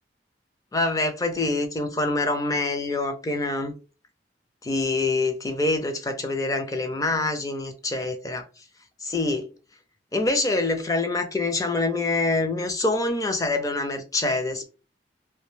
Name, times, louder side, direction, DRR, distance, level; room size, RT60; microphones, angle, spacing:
voice 1, 0.7-3.7 4.6-8.5 9.0-9.5 10.1-14.7, left 2 dB, 20° left, 0.4 m, -25 dB
2.6 x 2.1 x 3.1 m
head